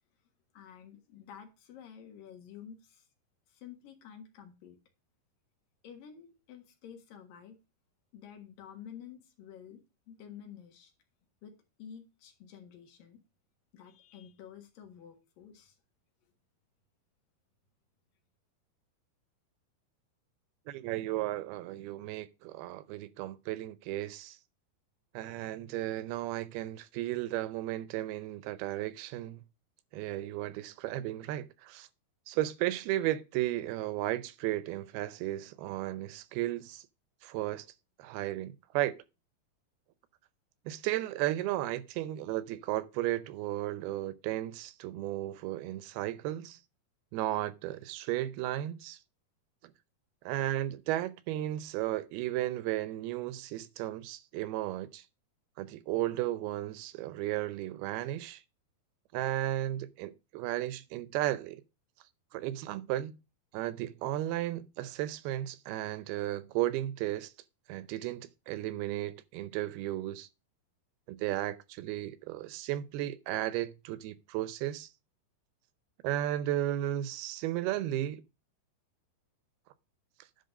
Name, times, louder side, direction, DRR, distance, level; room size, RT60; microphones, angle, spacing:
voice 1, 0.5-3.1 3.5-4.8 5.8-7.6 8.1-10.9 11.4-13.2 13.7-15.8, left 8 dB, 65° left, 3.1 m, -50 dB
voice 2, 20.7-24.4 25.1-29.4 29.9-31.9 32.3-36.8 37.2-37.7 38.0-39.0 40.7-46.6 47.1-49.0 49.6-49.7 50.3-55.0 55.6-58.4 59.1-61.6 62.3-63.2 63.5-67.3 67.7-70.3 71.1-74.9 76.0-78.2, right 14 dB, 85° right, 2.7 m, -34 dB
10.5 x 4.3 x 5.2 m
omnidirectional pair, 4.5 m